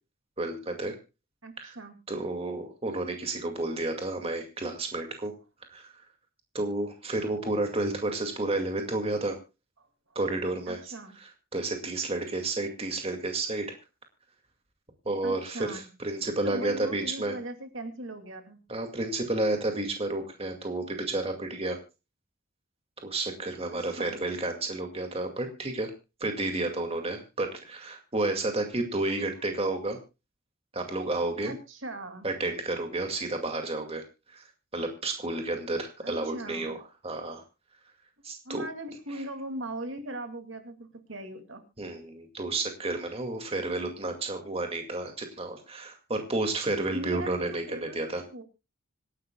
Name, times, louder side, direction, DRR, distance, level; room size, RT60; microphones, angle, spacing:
voice 1, 0.4-0.9 1.6-1.8 2.1-5.3 5.7-5.9 6.5-9.4 10.2-10.8 11.5-13.8 15.1-17.3 18.7-21.8 23.0-25.9 26.2-30.0 30.7-31.5 32.2-34.0 34.3-34.5 34.7-36.8 37.0-37.4 38.2-38.7 41.8-48.2, right 2 dB, 30° right, 4 dB, 2.2 m, -31 dB
voice 2, 1.4-1.9 9.8-10.2 10.7-11.1 15.2-15.9 16.4-18.6 23.7-24.2 31.4-32.3 33.1-33.4 36.0-36.8 38.4-41.6 46.9-47.3 47.7-48.4, right 1 dB, 60° right, 7 dB, 2.4 m, -40 dB
26.0 x 11.5 x 2.3 m, 0.29 s
head